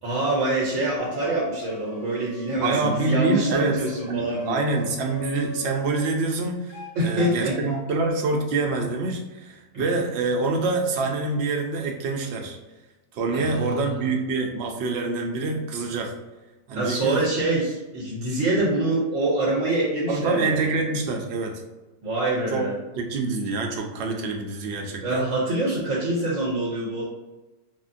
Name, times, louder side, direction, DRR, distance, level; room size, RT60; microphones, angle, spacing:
voice 1, 0.0-4.6 7.0-7.6 9.7-9.8 13.3-14.0 16.7-20.7 22.0-22.8 25.0-27.0, right 2 dB, 85° right, -4 dB, 1.1 m, -25 dB
sound 1, 1.0-6.1 6.7-7.3 7.6-7.8, left 3 dB, 80° left, 0.9 m, -40 dB
voice 2, 2.6-3.8 4.1-12.6 13.1-16.1 16.7-17.2 20.1-21.6 22.5-22.6 23.0-25.3, right 3 dB, 65° right, 2 dB, 0.7 m, -26 dB
3.6 x 2.0 x 2.5 m, 1.1 s
omnidirectional pair, 1.3 m